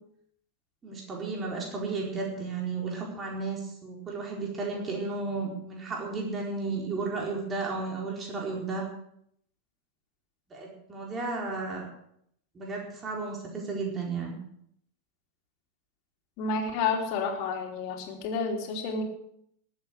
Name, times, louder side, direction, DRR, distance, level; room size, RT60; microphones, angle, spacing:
voice 1, 0.8-8.8 10.5-11.9 12.5-14.3, right 3 dB, 20° right, -1 dB, 4.5 m, -33 dB
voice 2, 16.4-19.0, left 4 dB, 45° left, 2 dB, 3.4 m, -30 dB
20.5 x 8.3 x 6.5 m, 0.70 s
figure-of-eight pair, 90°, 0 cm